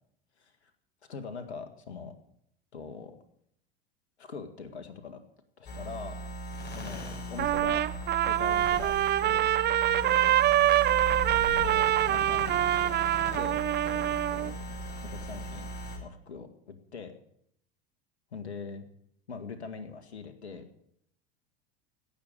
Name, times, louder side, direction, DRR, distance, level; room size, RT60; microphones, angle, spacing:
voice 1, 0.4-0.7 1.1-2.1 2.7-3.1 4.2-5.2 5.6-6.2 6.8-7.8 8.2-8.9 9.2-9.6 10.0-10.4 11.3-14.7 15.0-15.7 16.0-17.1 18.3-18.9 19.3-20.8, left 5 dB, 85° left, 8 dB, 1.9 m, -43 dB
sound 1, 5.6-16.0, right 1 dB, 35° left, 6.2 m, -38 dB
Trumpet, 7.4-14.5, right 13 dB, 30° right, 0.7 m, -25 dB
17.5 x 6.9 x 8.7 m, 0.69 s
hypercardioid pair, 90°, 32 cm